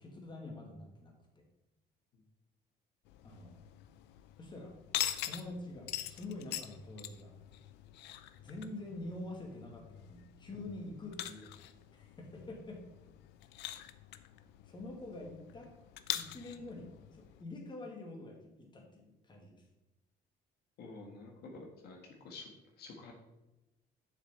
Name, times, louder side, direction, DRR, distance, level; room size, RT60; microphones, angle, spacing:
voice 1, 0.0-1.4 3.2-3.6 4.4-4.7 5.2-7.3 8.4-11.6 11.9-12.8 14.6-15.7 16.1-19.6, left 2 dB, 25° left, 0 dB, 2.0 m, -46 dB
sound 1, 3.1-17.4, left 13 dB, 90° left, 0.5 m, -44 dB
voice 2, 20.8-22.5 22.8-23.1, left 3 dB, 70° left, 1 dB, 1.6 m, -49 dB
7.2 x 6.5 x 4.2 m, 0.99 s
cardioid pair, 110°, 17 cm